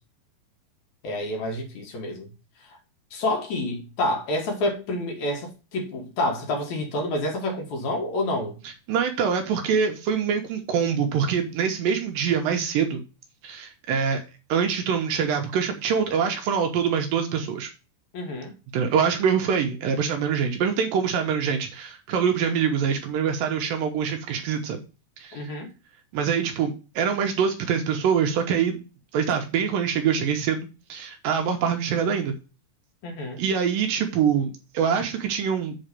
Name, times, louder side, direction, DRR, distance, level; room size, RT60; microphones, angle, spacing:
voice 1, 1.0-2.3 3.1-8.6 18.1-18.5 25.3-25.7 33.0-33.4, left 1 dB, 60° left, 2.5 m, -28 dB
voice 2, 8.9-13.0 13.4-14.2 14.5-17.7 18.7-24.8 25.2-25.5 26.1-28.8 29.1-32.3 33.4-35.8, right 7 dB, 75° right, 2.5 m, -24 dB
7.9 x 4.0 x 6.7 m
omnidirectional pair, 4.3 m